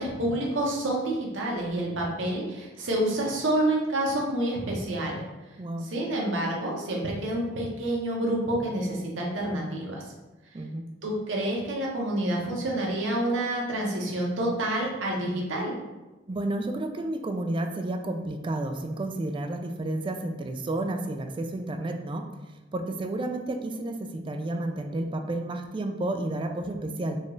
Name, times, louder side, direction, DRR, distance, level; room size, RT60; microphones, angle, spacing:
voice 1, 0.0-5.2 5.8-10.0 11.0-15.7, right 1 dB, 85° right, -2 dB, 0.9 m, -28 dB
voice 2, 5.6-5.9 10.5-10.9 16.3-27.2, right 1 dB, 25° right, 5 dB, 0.3 m, -31 dB
4.2 x 2.4 x 3.1 m, 1.1 s
head